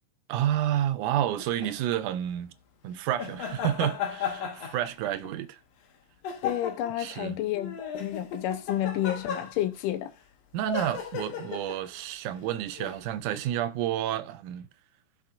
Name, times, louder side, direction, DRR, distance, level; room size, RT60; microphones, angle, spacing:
voice 1, 0.3-2.5 2.8-5.6 7.0-7.4 10.5-14.7, right 11 dB, 80° right, 2.0 m, -30 dB
sound 1, 1.4-1.7 3.2-5.3 6.2-7.0 7.5-9.8 10.6-11.9 12.8-13.0, left 6 dB, 65° left, 1.9 m, -35 dB
voice 2, 6.4-10.1, left 12 dB, 85° left, 2.3 m, -30 dB
15.0 x 6.0 x 2.5 m
omnidirectional pair, 3.7 m